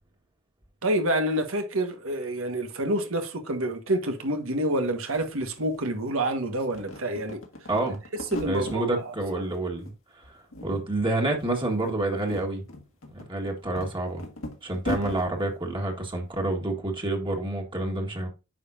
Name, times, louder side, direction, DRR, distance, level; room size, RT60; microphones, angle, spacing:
voice 1, 0.8-7.4 8.3-9.1, right 1 dB, 90° right, 1.5 m, -28 dB
sound 1, 4.8-4.9 5.1-6.3 6.6-8.8 9.2-10.0 10.2-11.1 11.3-11.5 12.0-15.3, left 2 dB, 70° left, 1.7 m, -38 dB
voice 2, 7.7-8.0 8.4-9.9 10.2-12.6 13.1-14.2 14.6-18.3, right 2 dB, 25° right, 1.6 m, -28 dB
9.3 x 5.5 x 2.6 m
head